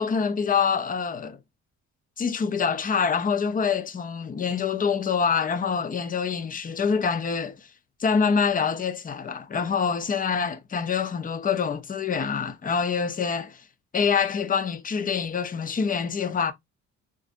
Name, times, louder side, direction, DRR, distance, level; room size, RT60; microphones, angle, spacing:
voice 1, 0.0-1.4 2.2-7.6 8.0-13.6 13.9-16.5, left 6 dB, 30° left, 0.5 m, -25 dB
3.9 x 2.6 x 2.5 m
cardioid pair, 90°, 30 cm